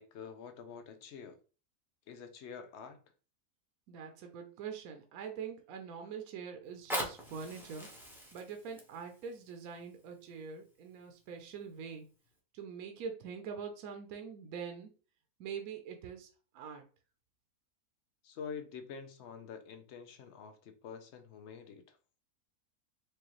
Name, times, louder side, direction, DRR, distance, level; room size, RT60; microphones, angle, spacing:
voice 1, 0.0-1.4 2.1-3.0 18.2-22.0, left 6 dB, 65° left, 0.7 m, -47 dB
voice 2, 3.9-7.9 8.3-12.1 12.5-14.9 15.4-16.3 16.5-16.8, right 6 dB, 70° right, 1.0 m, -44 dB
Fire, 6.6-11.6 12.2-12.3, equal, ahead, 0.5 m, -43 dB
4.7 x 2.4 x 2.9 m
omnidirectional pair, 1.7 m